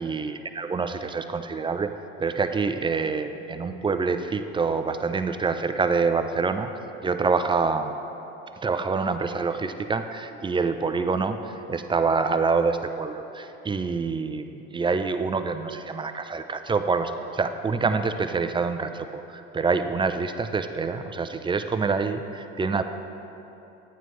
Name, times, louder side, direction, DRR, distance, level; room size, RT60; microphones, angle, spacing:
voice 1, 0.0-1.9 2.2-6.7 7.0-7.9 8.6-11.4 11.7-22.8, right 4 dB, 15° right, 8 dB, 0.4 m, -26 dB
10.5 x 9.1 x 3.1 m, 2.9 s
hypercardioid pair, 70°, 32 cm